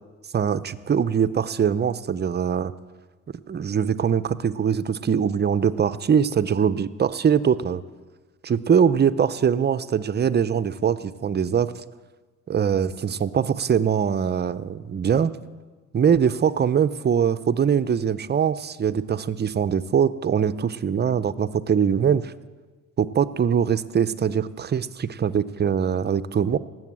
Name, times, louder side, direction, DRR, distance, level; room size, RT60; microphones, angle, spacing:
voice 1, 0.3-2.7 3.5-7.8 8.4-11.7 12.5-15.4 15.9-22.3 23.0-26.6, right 7 dB, 35° right, 13 dB, 0.6 m, -22 dB
19.0 x 7.8 x 7.5 m, 1.3 s
cardioid pair, 90°, 30 cm